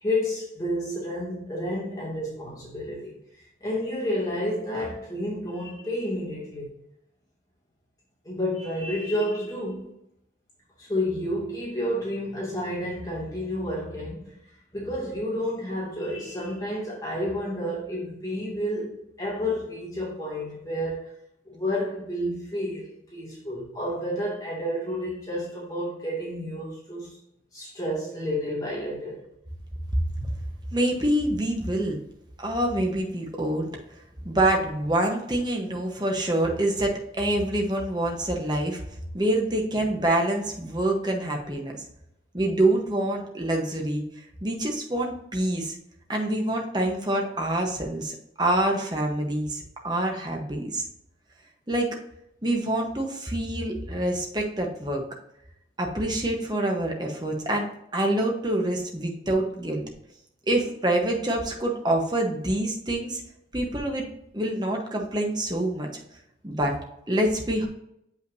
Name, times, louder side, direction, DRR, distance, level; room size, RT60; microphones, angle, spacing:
voice 1, 0.0-6.7 8.2-9.9 10.8-14.4 14.7-21.1 21.5-27.2 27.5-29.2, left 1 dB, 20° left, -7 dB, 2.3 m, -30 dB
voice 2, 30.7-32.0 32.4-33.7 34.2-38.8 39.1-41.8 42.3-44.0 44.4-45.7 46.1-50.8 51.7-51.9 52.4-55.0 55.8-57.7 57.9-59.8 60.5-63.2 63.5-64.0 64.3-65.9 66.4-66.8 67.1-67.7, right 1 dB, 25° right, 1 dB, 1.1 m, -26 dB
7.4 x 5.5 x 2.7 m, 0.79 s
head